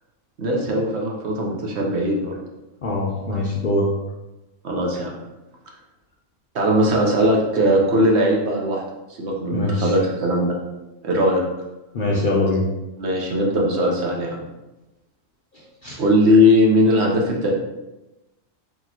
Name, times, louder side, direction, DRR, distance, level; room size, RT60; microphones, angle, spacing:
voice 1, 0.4-2.3 4.6-5.2 6.5-8.8 9.2-10.6 11.0-11.4 13.0-14.4 16.0-17.5, equal, 60° right, -1 dB, 1.0 m, -19 dB
voice 2, 2.8-3.9 9.5-9.9 11.9-12.7 15.5-16.0, left 2 dB, 60° left, -3 dB, 0.5 m, -23 dB
4.5 x 2.9 x 2.8 m, 1.0 s
omnidirectional pair, 1.4 m